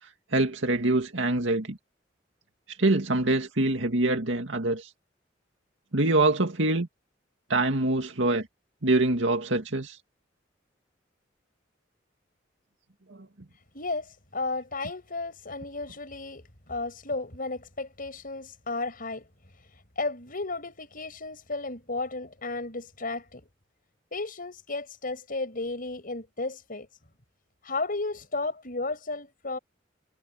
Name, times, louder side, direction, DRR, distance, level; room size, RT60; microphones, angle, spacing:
voice 1, 0.3-1.8 2.7-4.9 5.9-6.9 7.5-8.5 8.8-10.0 13.1-13.3, right 2 dB, 80° right, 2.2 m, -25 dB
voice 2, 13.7-19.3 20.0-23.4 24.1-26.9 27.6-29.6, left 3 dB, 50° left, 6.1 m, -33 dB
head